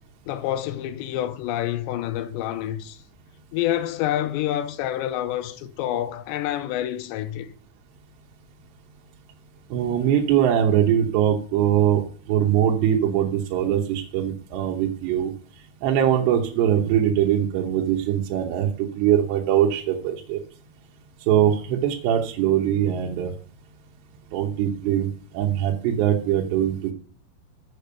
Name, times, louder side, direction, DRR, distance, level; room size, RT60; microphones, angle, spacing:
voice 1, 0.3-3.0 3.5-7.5, left 12 dB, 85° left, 3.0 m, -27 dB
voice 2, 9.7-12.0 12.3-15.3 15.8-20.4 21.3-23.3 24.3-25.1 25.3-26.9, right 10 dB, 75° right, 3.1 m, -22 dB
7.8 x 6.9 x 6.5 m
omnidirectional pair, 5.1 m